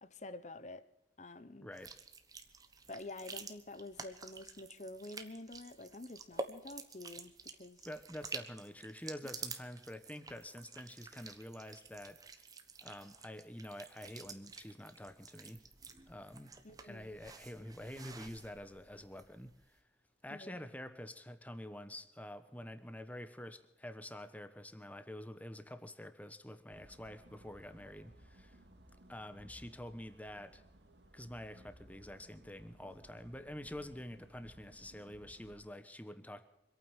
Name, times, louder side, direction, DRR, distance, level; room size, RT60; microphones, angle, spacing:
voice 1, 0.0-0.8 1.2-1.7 2.9-7.3 7.6-7.8 16.6-17.1 20.3-20.6, left 2 dB, 40° left, 13 dB, 1.0 m, -48 dB
voice 2, 1.6-1.9 7.8-12.2 12.8-15.6 16.1-16.6 16.8-19.8 20.2-28.6 29.1-30.6 31.1-36.4, left 1 dB, 10° left, 11 dB, 1.1 m, -47 dB
sound 1, 1.7-19.6, right 4 dB, 20° right, 1.2 m, -50 dB
sound 2, 26.7-35.6, right 1 dB, 75° right, 2.2 m, -60 dB
25.5 x 9.1 x 6.2 m, 0.89 s
head